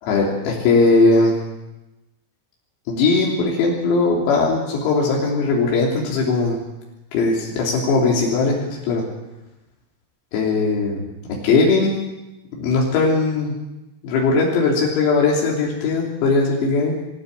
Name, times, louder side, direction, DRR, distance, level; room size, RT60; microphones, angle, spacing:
voice 1, 0.0-1.4 2.9-6.6 7.1-9.0 10.3-11.1 11.4-12.0 12.6-13.5 14.0-17.0, left 3 dB, 85° left, -3 dB, 6.1 m, -19 dB
24.0 x 14.5 x 8.5 m, 0.99 s
omnidirectional pair, 6.0 m